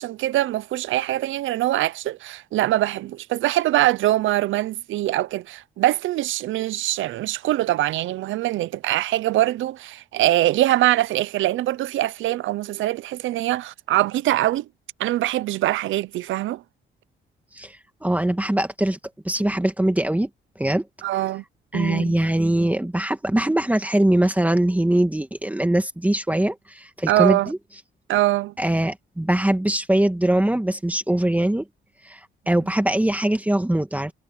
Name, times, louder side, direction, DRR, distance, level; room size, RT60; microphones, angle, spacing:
voice 1, 0.0-14.6 15.0-16.6 21.0-21.4 21.7-22.1 27.1-27.5 28.1-28.5, right 15 dB, 80° right, 0.6 m, -23 dB
voice 2, 18.0-19.0 19.2-20.3 20.6-20.9 21.7-27.6 28.6-31.6 32.0-32.2 32.5-34.1, right 1 dB, 5° right, 2.0 m, -22 dB
cardioid pair, 90°, 20 cm